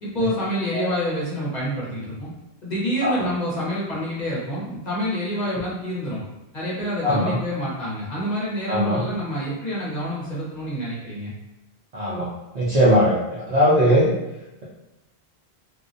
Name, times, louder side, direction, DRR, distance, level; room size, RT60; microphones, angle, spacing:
voice 1, 0.0-2.3 2.6-6.2 6.5-11.3, equal, 45° left, -8 dB, 0.9 m, -27 dB
voice 2, 7.0-7.4 8.7-9.0 11.9-12.3 12.5-14.1, equal, 55° right, -7 dB, 0.4 m, -19 dB
2.4 x 2.1 x 2.5 m, 1.0 s
omnidirectional pair, 1.1 m